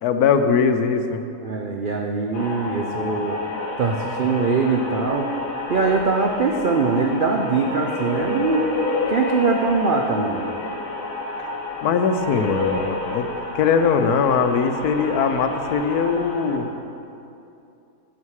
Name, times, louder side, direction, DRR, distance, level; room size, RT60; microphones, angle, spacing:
voice 1, 0.0-1.2 11.8-13.3 13.5-16.7, left 6 dB, 75° left, 8 dB, 1.1 m, -20 dB
voice 2, 1.4-3.4 3.8-5.3 5.7-8.7 9.1-10.5, right 4 dB, 70° right, 2 dB, 0.4 m, -22 dB
sound 1, 2.3-16.6, left 2 dB, 60° left, 1.7 m, -29 dB
12.5 x 7.4 x 4.8 m, 2.7 s
omnidirectional pair, 1.7 m